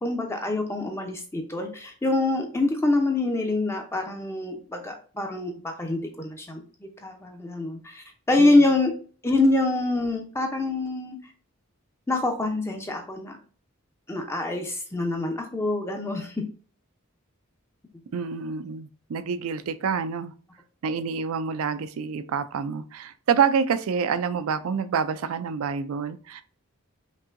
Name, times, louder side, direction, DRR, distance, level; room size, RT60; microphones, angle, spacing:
voice 1, 0.0-8.9 9.2-11.2 12.1-13.4 14.1-16.4, left 2 dB, 10° left, 3 dB, 0.5 m, -25 dB
voice 2, 18.1-20.3 20.8-26.4, right 6 dB, 80° right, 13 dB, 0.4 m, -27 dB
5.4 x 2.7 x 2.5 m, 0.40 s
head